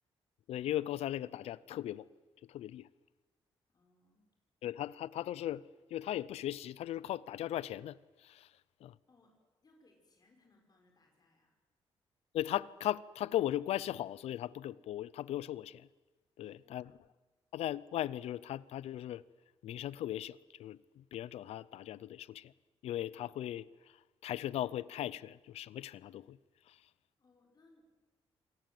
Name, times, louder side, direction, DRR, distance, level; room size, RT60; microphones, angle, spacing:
voice 1, 0.5-2.1 2.4-2.9 4.6-5.6 5.9-8.5 8.8-9.0 12.3-15.9 16.4-16.9 17.5-19.2 19.6-22.5 22.8-26.4 26.7-26.9, left 12 dB, 85° left, 0.6 m, -38 dB
voice 2, 3.7-4.3 9.1-9.4 9.6-11.6 16.4-17.0 27.2-27.8, left 2 dB, 40° left, 5.3 m, -68 dB
26.0 x 18.0 x 7.8 m
cardioid pair, 85°, 10 cm